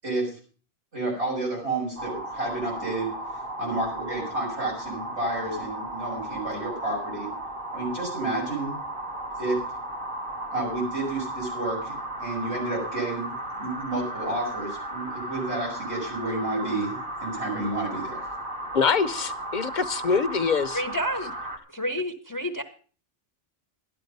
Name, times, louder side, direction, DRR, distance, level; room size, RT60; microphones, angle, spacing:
voice 1, 0.9-3.1 3.6-7.3 7.7-8.8 9.4-9.6 10.5-11.9 12.2-18.3, right 2 dB, 90° right, -3 dB, 6.8 m, -30 dB
sound 1, 2.0-21.6, right 1 dB, 55° right, 2.0 m, -35 dB
voice 2, 18.7-20.8, left 5 dB, 50° left, 10 dB, 0.9 m, -24 dB
voice 3, 20.7-21.3 21.7-22.6, equal, 20° left, 8 dB, 0.8 m, -29 dB
13.0 x 11.0 x 5.4 m, 0.40 s
omnidirectional pair, 1.1 m